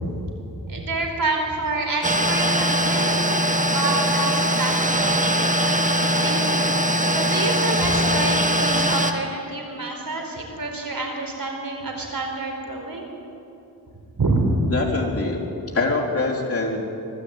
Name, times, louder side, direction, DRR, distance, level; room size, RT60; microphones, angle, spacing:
voice 1, 0.6-3.2 3.7-5.5 6.2-6.7 7.1-13.1 14.2-14.4, right 3 dB, 65° right, 2 dB, 4.5 m, -28 dB
sound 1, 2.0-9.1, equal, 20° right, 1.6 m, -21 dB
voice 2, 14.7-15.4 15.7-17.0, left 3 dB, 35° left, -2 dB, 3.9 m, -24 dB
23.0 x 13.0 x 9.1 m, 2.8 s
wide cardioid pair, 70°, 38 cm